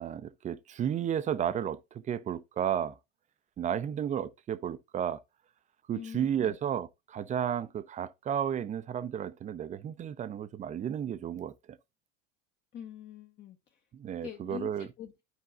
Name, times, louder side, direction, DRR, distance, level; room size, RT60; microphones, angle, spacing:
voice 1, 0.0-3.0 3.6-5.2 5.9-11.5 13.9-14.9, right 9 dB, 20° right, 0.4 m, -33 dB
voice 2, 5.9-6.6 12.7-13.8 14.2-15.2, left 9 dB, 30° left, 0.7 m, -44 dB
11.0 x 4.6 x 2.3 m
hypercardioid pair, 80°, 37 cm